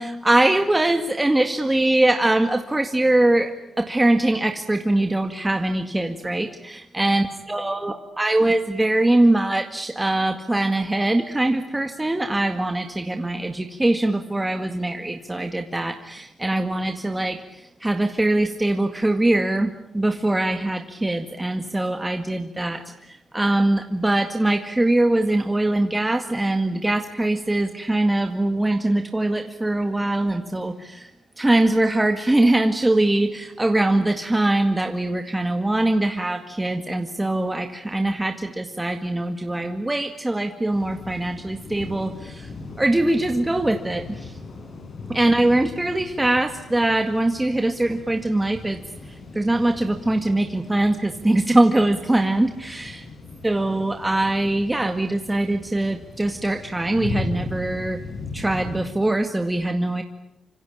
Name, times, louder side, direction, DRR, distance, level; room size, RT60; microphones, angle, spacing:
voice 1, 0.0-44.4 45.1-53.1 53.4-58.0 58.3-60.0, right 1 dB, 15° right, 6 dB, 1.9 m, -22 dB
sound 1, 40.7-58.8, left 3 dB, 60° left, 6.9 m, -38 dB
26.0 x 24.5 x 8.7 m, 0.86 s
cardioid pair, 70°, 0 cm